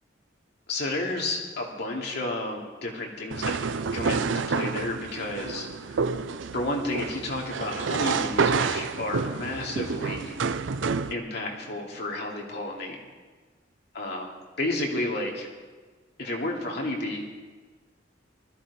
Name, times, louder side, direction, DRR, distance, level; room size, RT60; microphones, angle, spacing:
voice 1, 0.7-3.6 3.9-6.0 6.5-10.4 11.1-13.0 13.9-14.3 14.6-15.5 16.2-17.2, left 2 dB, 60° left, -1 dB, 2.7 m, -31 dB
sound 1, 3.3-11.1, right 5 dB, 85° right, 0.6 m, -29 dB
20.0 x 14.0 x 4.3 m, 1.4 s
head